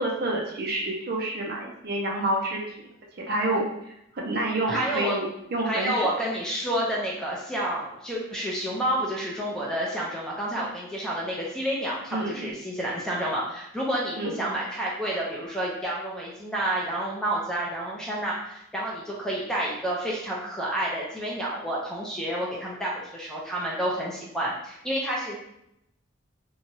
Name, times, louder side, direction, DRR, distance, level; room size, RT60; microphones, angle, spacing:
voice 1, 0.0-2.6 3.2-6.1 12.1-12.5 14.2-14.5, right 1 dB, 45° right, -1 dB, 0.5 m, -28 dB
voice 2, 4.7-5.2 5.7-25.4, right 1 dB, 5° left, -5 dB, 0.5 m, -29 dB
2.9 x 2.3 x 2.6 m, 0.80 s
head